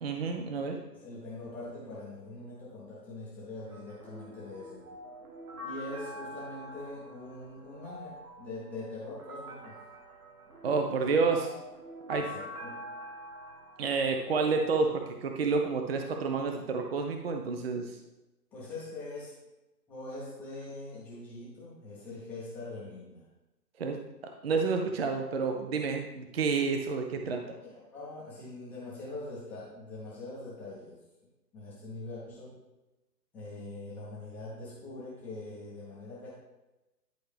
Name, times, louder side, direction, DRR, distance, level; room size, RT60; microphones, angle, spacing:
voice 1, 0.0-0.8 10.6-11.5 12.1-12.3 13.8-18.0 23.8-24.0 24.4-27.6, right 4 dB, 40° right, 4 dB, 0.6 m, -29 dB
voice 2, 0.9-4.8 5.6-9.8 12.1-12.9 18.5-19.4 19.9-23.2 27.6-31.0 31.5-32.6 33.3-36.3, left 2 dB, 5° left, -9 dB, 0.7 m, -43 dB
sound 1, 3.7-15.0, equal, 60° right, 1.6 m, -46 dB
10.5 x 4.3 x 3.4 m, 1.0 s
figure-of-eight pair, 140°, 49 cm